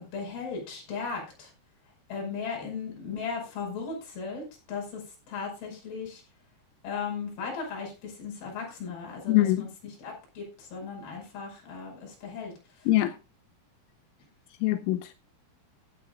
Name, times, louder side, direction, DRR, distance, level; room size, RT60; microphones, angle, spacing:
voice 1, 0.0-1.5 2.1-6.2 6.8-12.9, left 5 dB, 50° left, 7.3 m, -37 dB
voice 2, 9.3-9.7 12.9-13.1 14.6-15.1, left 15 dB, 85° left, 3.3 m, -23 dB
16.0 x 11.5 x 2.4 m
omnidirectional pair, 5.8 m